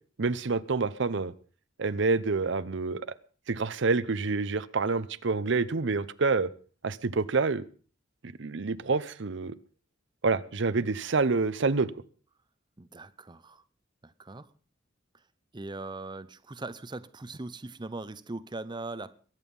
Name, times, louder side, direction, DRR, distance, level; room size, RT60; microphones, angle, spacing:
voice 1, 0.2-1.3 1.8-3.1 3.5-6.5 6.8-7.6 8.4-9.5 10.2-11.9, right 4 dB, 65° right, 0.7 m, -27 dB
voice 2, 12.8-13.6 14.0-14.5 15.5-19.2, right 2 dB, 25° right, 0.6 m, -40 dB
22.5 x 9.1 x 5.4 m
head